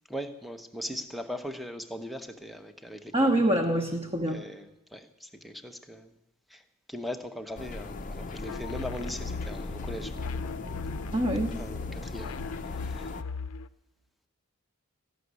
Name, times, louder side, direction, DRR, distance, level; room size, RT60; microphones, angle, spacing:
voice 1, 0.1-3.3 4.3-6.1 6.5-6.6 6.9-10.1 11.6-12.4 12.8-13.1, equal, ahead, 8 dB, 0.7 m, -39 dB
voice 2, 3.1-4.4 11.1-11.6, right 1 dB, 25° right, 1 dB, 0.9 m, -25 dB
sound 1, 7.6-13.2, left 2 dB, 35° left, 0.5 m, -38 dB
sound 2, 8.5-13.7, left 5 dB, 85° left, 0.5 m, -38 dB
14.0 x 6.2 x 9.4 m, 0.96 s
head